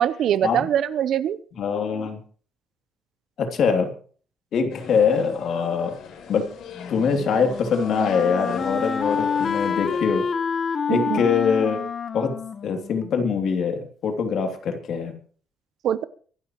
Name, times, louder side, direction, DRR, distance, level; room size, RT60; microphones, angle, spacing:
voice 1, 0.0-1.4 10.9-11.2 15.8-16.0, right 10 dB, 60° right, 16 dB, 0.8 m, -22 dB
voice 2, 1.6-2.2 3.4-3.9 4.5-5.9 6.3-6.4 6.9-10.2 10.9-11.8 12.1-12.3 12.6-15.1, left 6 dB, 55° left, 5 dB, 2.9 m, -23 dB
voices in cafe, 4.7-10.0, left 7 dB, 75° left, 4.3 m, -39 dB
Wind instrument woodwind instrument, 6.7-13.6, left 6 dB, 35° left, 1.0 m, -28 dB
24.0 x 12.5 x 3.1 m, 0.43 s
cardioid pair, 155°, 0 cm